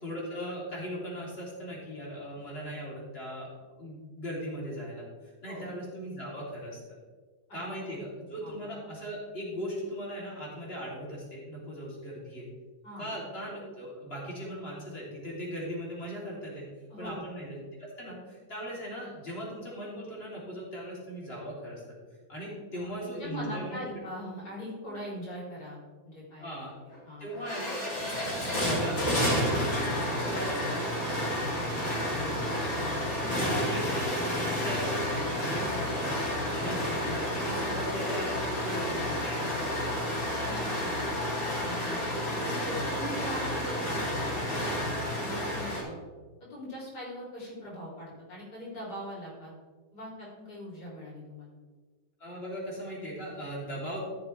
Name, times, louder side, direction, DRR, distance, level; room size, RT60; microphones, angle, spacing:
voice 1, 0.0-3.5 3.8-6.8 7.5-12.5 13.0-16.7 17.0-21.8 22.3-23.9 26.4-26.7 27.2-29.8 30.1-32.8 33.4-36.1 36.5-40.2 52.2-54.0, equal, 35° left, -5 dB, 3.3 m, -39 dB
voice 2, 16.9-17.2 22.7-26.5 27.1-27.3 28.1-28.2 33.2-33.8 36.5-37.0 40.4-46.0 46.5-49.5 49.9-51.5, equal, 85° left, -5 dB, 4.0 m, -41 dB
sound 1, 26.9-27.0 27.3-45.8, equal, 55° left, 3.4 m, -30 dB
14.0 x 6.9 x 3.3 m, 1.4 s
omnidirectional pair, 1.7 m